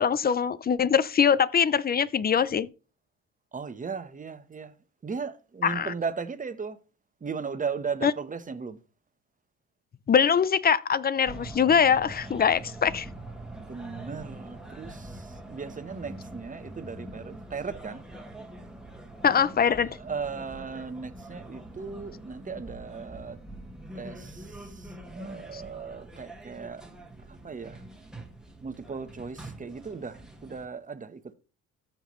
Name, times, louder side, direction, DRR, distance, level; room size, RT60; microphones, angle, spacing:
voice 1, 0.0-2.7 5.6-5.9 8.0-8.1 10.1-13.1 19.2-20.0 25.5-25.6, left 7 dB, 30° left, 0.5 m, -23 dB
voice 2, 3.5-4.7 5.0-6.8 7.2-8.8 13.5-18.0 19.9-23.4 23.9-26.8 27.3-27.8 28.6-31.3, right 5 dB, 25° right, 1.0 m, -37 dB
sound 1, 11.3-30.7, right 1 dB, ahead, 1.9 m, -44 dB
14.0 x 5.9 x 3.1 m
cardioid pair, 90°, 30 cm